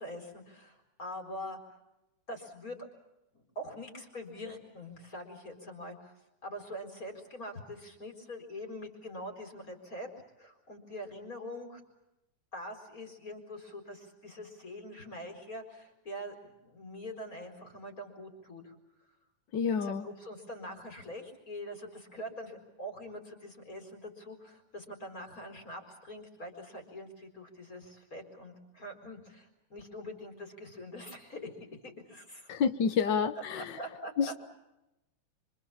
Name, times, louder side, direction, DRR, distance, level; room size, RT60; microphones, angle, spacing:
voice 1, 0.0-1.6 2.3-2.8 3.3-6.1 6.4-10.1 10.4-11.8 12.5-18.7 19.6-31.5 31.8-32.5 33.5-34.3, equal, 25° left, 4 dB, 4.6 m, -44 dB
voice 2, 19.5-20.1 32.5-33.7 34.2-34.3, left 6 dB, 80° left, 9 dB, 1.0 m, -29 dB
27.5 x 25.5 x 7.3 m, 0.93 s
omnidirectional pair, 3.8 m